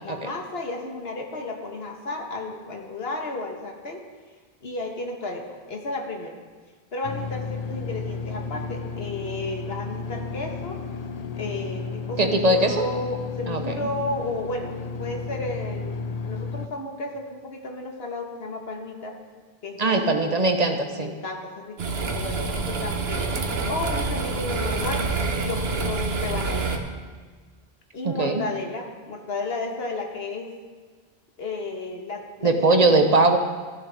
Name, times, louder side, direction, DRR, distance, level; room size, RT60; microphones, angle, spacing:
voice 1, 0.0-4.0 4.6-6.4 6.9-10.8 11.4-19.1 19.6-20.4 21.0-23.3 23.6-25.0 25.4-26.9 27.9-30.5 31.4-33.0, left 2 dB, 75° left, 2 dB, 1.6 m, -33 dB
sound 1, 7.0-16.7, left 5 dB, 50° left, 0.6 m, -33 dB
voice 2, 12.2-12.8 13.5-13.9 19.8-21.1 28.0-28.4 32.4-33.4, right 2 dB, 40° right, 5 dB, 1.0 m, -20 dB
sound 2, 21.8-26.8, right 3 dB, 85° right, 1.2 m, -27 dB
15.0 x 10.0 x 3.5 m, 1.5 s
omnidirectional pair, 1.0 m